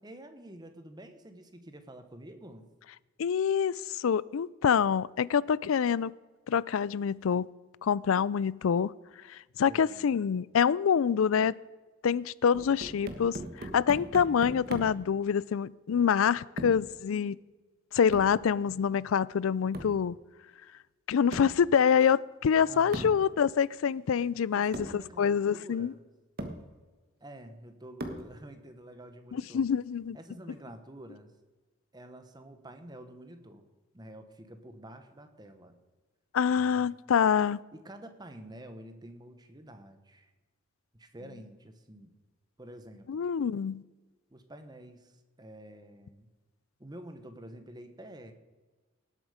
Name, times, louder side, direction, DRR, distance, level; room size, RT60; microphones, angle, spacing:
voice 1, 0.0-2.7 9.7-10.1 22.7-23.2 24.5-26.0 27.2-29.6 30.1-31.3 31.9-33.7 33.9-35.8 36.6-36.8 37.7-40.3 40.9-42.1 42.6-43.3 44.3-46.3 46.8-48.3, right 1 dB, 20° right, 1.1 m, -48 dB
voice 2, 3.2-6.1 6.5-7.5 7.8-8.9 9.3-11.5 12.0-17.4 17.9-20.2 21.1-25.9 29.3-30.2 36.3-37.6 43.1-43.8, left 7 dB, 75° left, 0.4 m, -26 dB
sound 1, 12.5-15.1 16.6-16.9 18.1-18.4 19.7-20.0 21.3-21.6 22.9-23.2 24.2-24.3 24.7-25.0 25.9-26.0 26.4-26.7 28.0-28.4, right 1 dB, 50° right, 1.4 m, -39 dB
18.5 x 8.2 x 5.0 m
head